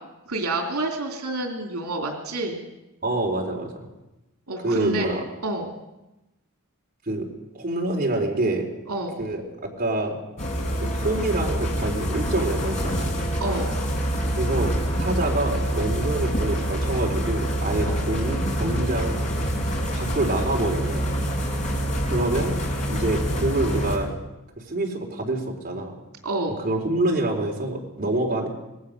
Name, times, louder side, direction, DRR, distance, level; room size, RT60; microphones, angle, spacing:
voice 1, 0.3-2.6 4.5-5.1 5.4-5.7 8.9-9.2 13.4-13.8 17.9-18.0 26.2-26.6, right 2 dB, 80° right, 3 dB, 3.0 m, -28 dB
voice 2, 3.0-3.7 4.6-5.2 7.1-7.3 7.5-8.7 9.2-10.2 10.8-13.1 14.4-14.7 15.0-19.2 19.9-21.1 22.1-22.5 22.9-24.1 24.7-25.9 26.6-28.5, right 2 dB, 40° right, -1 dB, 4.1 m, -26 dB
sound 1, 10.4-24.0, equal, 35° left, 5.7 m, -26 dB
26.0 x 19.0 x 6.6 m, 0.98 s
head